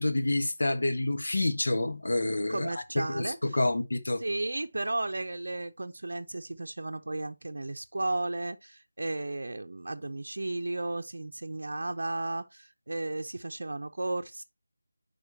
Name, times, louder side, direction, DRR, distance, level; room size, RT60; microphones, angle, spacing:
voice 1, 0.0-2.7 3.1-4.2, left 2 dB, 60° left, 1.3 m, -28 dB
voice 2, 2.5-3.6 4.2-14.4, right 2 dB, 60° right, 0.6 m, -34 dB
9.3 x 5.0 x 2.9 m
figure-of-eight pair, 165°, 0 cm